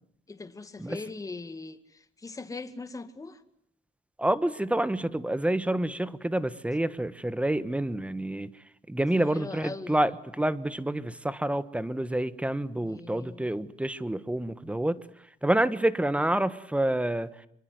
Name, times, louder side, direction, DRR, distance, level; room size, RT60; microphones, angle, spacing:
voice 1, 0.3-3.4 9.1-10.0 12.8-13.5, left 3 dB, 20° left, 2.1 m, -41 dB
voice 2, 4.2-15.0 15.4-17.4, right 1 dB, 5° right, 1.4 m, -28 dB
26.0 x 24.0 x 9.5 m
cardioid pair, 110°, 17 cm